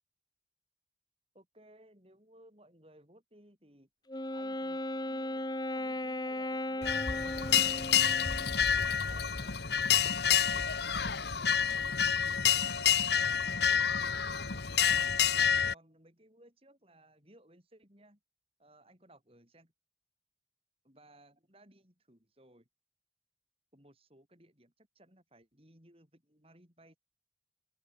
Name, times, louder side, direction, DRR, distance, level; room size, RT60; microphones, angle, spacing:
voice 1, 1.3-3.9 4.3-7.5 8.7-11.9 12.4-15.1 15.6-18.2 18.6-19.7 20.8-22.7 23.7-27.0, right 1 dB, 30° right, 7.0 m, -61 dB
Wind instrument woodwind instrument, 4.1-8.6, left 1 dB, 20° left, 1.7 m, -36 dB
sound 1, 6.8-15.7, left 8 dB, 65° left, 1.4 m, -28 dB
open air
head